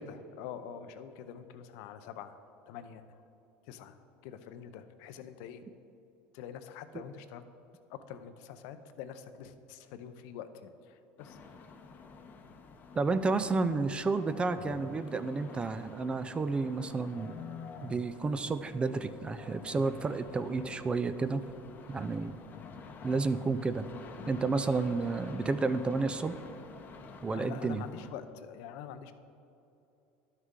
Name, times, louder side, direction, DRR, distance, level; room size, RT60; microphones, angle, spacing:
voice 1, 0.0-2.4 2.7-3.2 3.7-3.9 4.2-5.7 6.3-7.4 7.9-11.4 27.3-29.1, left 8 dB, 70° left, 10 dB, 0.6 m, -45 dB
sound 1, 11.2-28.1, left 5 dB, 30° left, 0.7 m, -48 dB
voice 2, 12.9-17.3 17.8-21.4 21.9-22.4 23.0-23.9 24.3-26.4 27.2-27.8, right 3 dB, 20° right, 12 dB, 0.3 m, -31 dB
12.0 x 6.5 x 3.7 m, 2.7 s
supercardioid pair, 130°, 6 cm